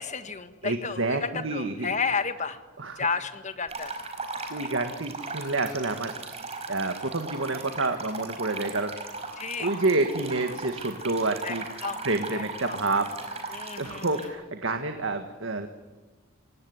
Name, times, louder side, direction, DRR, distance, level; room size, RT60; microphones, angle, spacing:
voice 1, 0.0-2.6 3.0-3.9 4.6-4.7 9.4-9.7 11.4-11.5 11.8-12.0 12.3-12.8 13.5-14.1, left 5 dB, 35° left, 10 dB, 1.6 m, -32 dB
voice 2, 0.6-2.0 2.8-3.1 4.5-6.1 6.7-8.9 9.6-11.6 12.0-15.7, right 2 dB, 70° right, 7 dB, 1.8 m, -29 dB
sound 1, 3.7-14.3, right 3 dB, 30° right, 4.6 m, -38 dB
26.0 x 18.5 x 9.7 m, 1.3 s
head